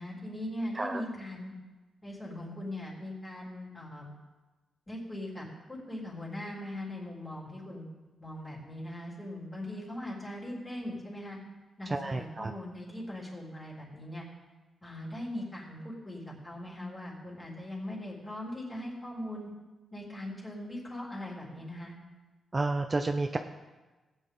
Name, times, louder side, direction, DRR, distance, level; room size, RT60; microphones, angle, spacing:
voice 1, 0.0-1.5 2.0-4.1 4.9-7.9 8.2-11.4 11.8-14.2 14.8-19.5 19.9-22.0, left 1 dB, 20° left, -4 dB, 3.6 m, -40 dB
voice 2, 11.9-12.5 22.5-23.4, right 3 dB, 25° right, 6 dB, 0.5 m, -30 dB
18.0 x 8.9 x 3.8 m, 1.2 s
cardioid pair, 120°, 0 cm